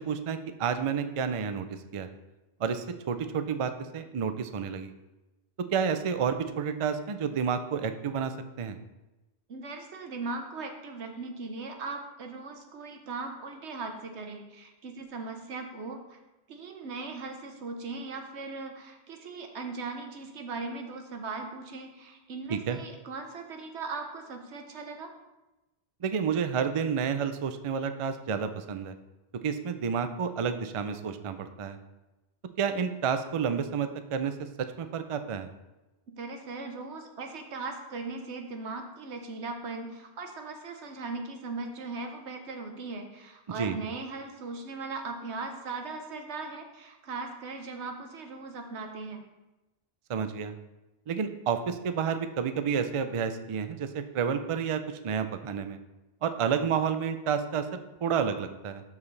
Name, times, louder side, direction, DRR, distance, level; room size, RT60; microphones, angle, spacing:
voice 1, 0.0-1.7 1.9-2.1 2.6-4.9 5.7-8.3 8.6-8.8 22.5-22.8 26.0-28.9 29.4-31.8 32.6-34.3 34.8-35.5 43.6-43.8 50.1-50.5 51.1-55.8 56.2-57.6 58.0-58.8, right 7 dB, 50° right, 9 dB, 0.4 m, -30 dB
voice 2, 9.5-16.2 16.5-25.1 36.1-49.2, right 3 dB, 85° right, 5 dB, 1.2 m, -39 dB
12.5 x 4.7 x 3.3 m, 1.0 s
omnidirectional pair, 1.1 m